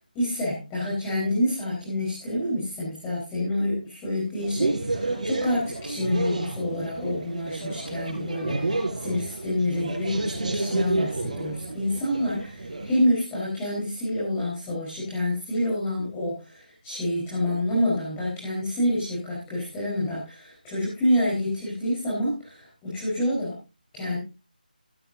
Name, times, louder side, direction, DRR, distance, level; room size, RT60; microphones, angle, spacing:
voice 1, 0.1-23.6 23.9-24.2, left 1 dB, 10° left, -7 dB, 4.5 m, -27 dB
sound 1, 4.4-13.0, right 2 dB, 45° right, 5.2 m, -30 dB
14.5 x 13.5 x 2.7 m, 0.29 s
figure-of-eight pair, 165°, 5 cm